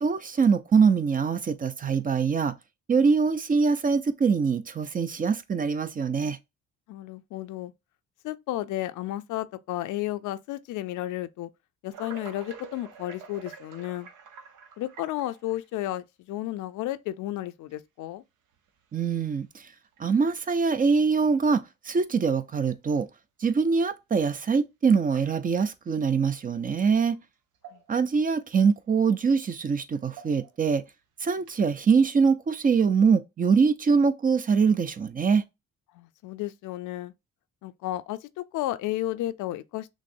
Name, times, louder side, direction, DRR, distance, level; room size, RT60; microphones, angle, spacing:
voice 1, 0.0-2.5 2.9-6.4 18.9-19.7 20.0-23.1 23.4-27.2 27.9-30.8 31.2-35.4, right 5 dB, 30° right, 0.4 m, -23 dB
voice 2, 6.9-7.7 8.2-11.5 11.8-14.1 14.8-18.2 27.7-27.8 35.9-37.1 37.6-39.9, left 14 dB, 80° left, 0.5 m, -33 dB
sound 1, 11.9-15.8 16.6-16.7 17.7-17.8 18.5-18.8 19.3-19.4 19.8-20.0 21.4-21.5 24.2-24.3 25.1-25.7 27.1-27.2 27.5-28.2 28.5-28.6 29.9-30.7 31.4-31.7, right 6 dB, 85° right, 0.8 m, -47 dB
6.0 x 2.1 x 2.6 m
cardioid pair, 90°, 30 cm